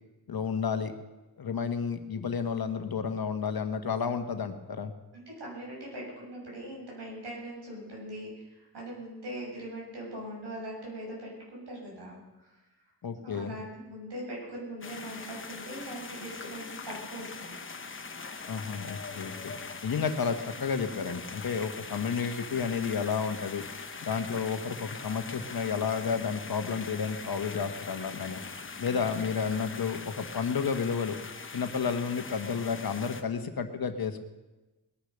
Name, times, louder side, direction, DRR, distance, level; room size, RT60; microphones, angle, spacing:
voice 1, 0.3-0.9 1.4-4.9 13.0-13.5 18.5-19.5 19.8-23.7 24.0-28.4 28.8-31.1 31.5-34.2, left 6 dB, 65° left, 8 dB, 1.3 m, -31 dB
voice 2, 5.1-12.6 13.2-17.6 19.4-19.8, right 1 dB, 85° right, -3 dB, 7.0 m, -41 dB
sound 1, 14.8-33.2, left 4 dB, 30° left, 1.0 m, -42 dB
20.0 x 10.0 x 6.5 m, 1.1 s
wide cardioid pair, 170°, 40 cm